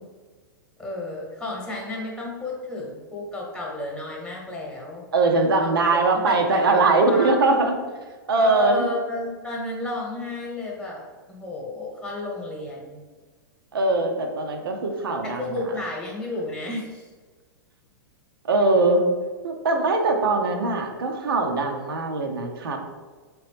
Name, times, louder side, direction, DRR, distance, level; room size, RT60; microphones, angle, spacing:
voice 1, 0.8-5.0 5.6-5.7 6.2-7.3 8.4-13.0 15.2-17.1, left 2 dB, 5° left, -2 dB, 1.0 m, -32 dB
voice 2, 5.1-7.7 8.3-8.9 13.7-15.4 18.4-19.0 19.4-22.8, right 3 dB, 90° right, 3 dB, 0.6 m, -21 dB
3.8 x 3.0 x 3.3 m, 1.4 s
hypercardioid pair, 125°, 12 cm